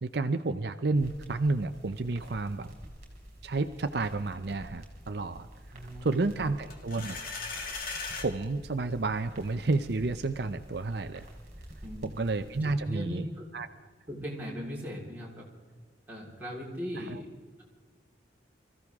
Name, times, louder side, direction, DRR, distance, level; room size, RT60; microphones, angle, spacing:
voice 1, 0.0-2.7 3.4-5.5 6.0-7.2 8.2-11.2 12.0-13.2 13.5-13.7 17.0-17.2, right 3 dB, 60° right, 8 dB, 0.6 m, -30 dB
sound 1, 0.9-12.8, equal, 35° right, 4.0 m, -49 dB
voice 2, 5.7-6.5 11.8-12.2 12.6-13.4 14.1-15.4 16.1-17.3, equal, 10° right, -5 dB, 4.0 m, -39 dB
sound 2, 6.7-8.3, left 4 dB, 50° left, 1.9 m, -37 dB
25.0 x 15.0 x 3.6 m, 1.5 s
head